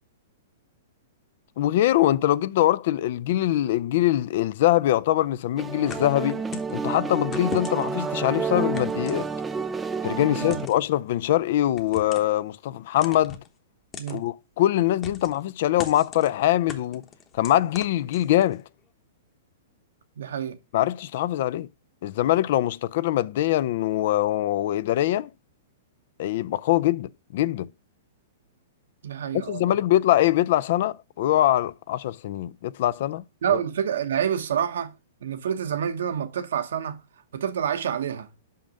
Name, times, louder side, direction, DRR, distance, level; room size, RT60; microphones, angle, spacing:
voice 1, 1.6-6.4 6.7-9.3 10.0-13.4 14.1-17.0 17.4-18.6 20.7-21.7 22.0-25.3 26.2-27.7 29.3-33.2 33.5-33.6, left 13 dB, 55° left, 0.4 m, -23 dB
sound 1, 5.6-10.7, right 5 dB, 10° right, 0.5 m, -30 dB
sound 2, 5.9-6.8 7.3-8.0 8.7-9.7 10.4-10.9 11.8-12.4 13.0-13.5 13.9-14.2 15.0-15.4 15.8-16.3 16.7-18.6, left 6 dB, 20° left, 1.0 m, -39 dB
voice 2, 10.2-10.6 14.0-14.2 20.2-20.6 29.0-29.8 33.4-34.9 35.2-37.0 37.3-38.3, right 9 dB, 80° right, 1.0 m, -28 dB
5.7 x 5.3 x 5.0 m
hypercardioid pair, 145°, 0 cm